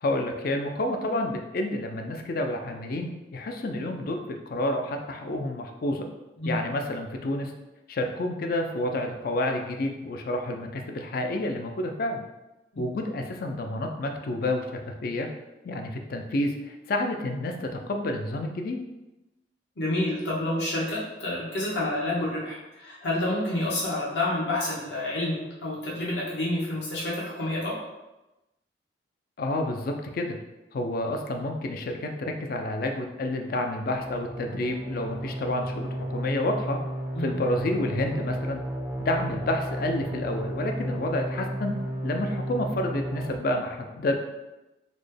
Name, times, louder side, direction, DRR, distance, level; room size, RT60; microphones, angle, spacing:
voice 1, 0.0-6.1 6.4-7.5 7.9-12.2 12.8-14.6 15.0-15.3 15.6-18.8 29.4-30.4 30.7-36.8 37.2-38.6 39.0-44.1, left 1 dB, 55° left, 4 dB, 0.4 m, -29 dB
voice 2, 19.8-27.8 37.1-37.3, left 1 dB, 70° left, -6 dB, 1.1 m, -29 dB
sound 1, 34.0-43.4, right 1 dB, 5° right, 0.4 m, -33 dB
4.0 x 2.2 x 3.3 m, 1.0 s
head